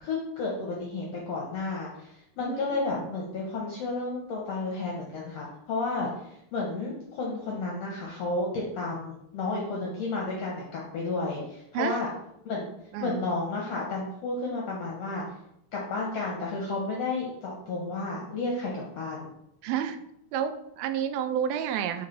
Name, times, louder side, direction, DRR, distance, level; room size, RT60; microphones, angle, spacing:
voice 1, 0.0-12.1 12.4-12.7 13.0-15.2 15.7-19.3, left 3 dB, 70° left, -2 dB, 1.5 m, -32 dB
voice 2, 2.4-3.1 11.7-12.0 12.9-13.2 19.6-20.0 20.3-22.1, right 9 dB, 85° right, 9 dB, 2.4 m, -30 dB
5.5 x 4.0 x 5.3 m, 0.77 s
omnidirectional pair, 4.2 m